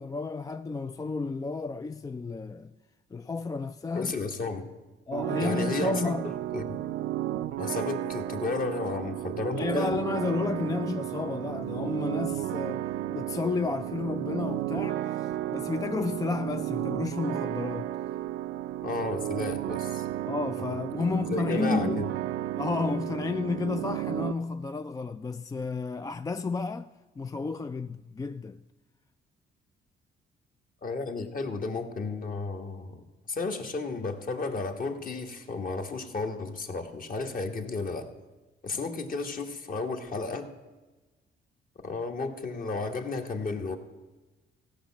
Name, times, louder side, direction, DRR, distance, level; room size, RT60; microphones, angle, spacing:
voice 1, 0.0-2.7 3.1-4.1 5.1-6.3 9.5-12.8 13.1-17.9 20.3-22.1 22.6-26.9 27.2-28.6, left 4 dB, 20° left, 0.3 m, -32 dB
voice 2, 3.9-4.7 5.4-5.9 6.2-6.8 7.6-10.0 18.8-20.1 21.0-22.1 30.8-38.1 38.6-40.5 41.8-43.8, left 3 dB, 45° left, 1.4 m, -33 dB
sound 1, 5.1-24.3, right 13 dB, 75° right, 0.5 m, -33 dB
16.0 x 5.7 x 7.3 m
cardioid pair, 90°, 20 cm